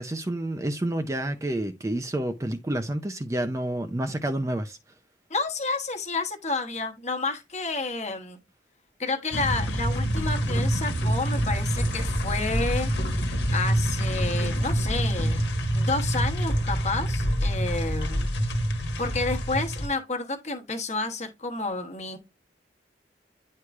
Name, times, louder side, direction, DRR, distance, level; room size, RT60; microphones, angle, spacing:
voice 1, 0.0-4.8, right 1 dB, 15° right, 0.4 m, -29 dB
voice 2, 5.3-8.4 9.0-12.9 13.5-15.5 15.7-18.3 19.0-22.2, left 3 dB, 40° left, 1.2 m, -30 dB
sound 1, 9.3-19.9, equal, 70° left, 1.4 m, -26 dB
9.7 x 4.6 x 2.4 m
head